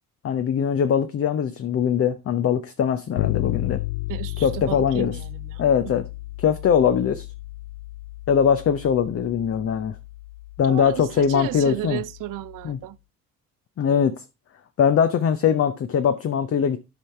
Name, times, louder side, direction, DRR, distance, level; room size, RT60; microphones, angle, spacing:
voice 1, 0.2-3.8 4.4-5.2 5.6-6.0 6.4-7.2 8.3-10.0 10.6-12.0 12.6-12.8 13.8-14.2 14.8-16.8, left 7 dB, 30° left, 0.7 m, -21 dB
Bass guitar, 3.2-12.8, left 18 dB, 70° left, 0.5 m, -33 dB
voice 2, 4.1-5.9 10.6-13.0, right 17 dB, 45° right, 0.5 m, -34 dB
13.0 x 5.5 x 3.3 m
figure-of-eight pair, 40°, 46 cm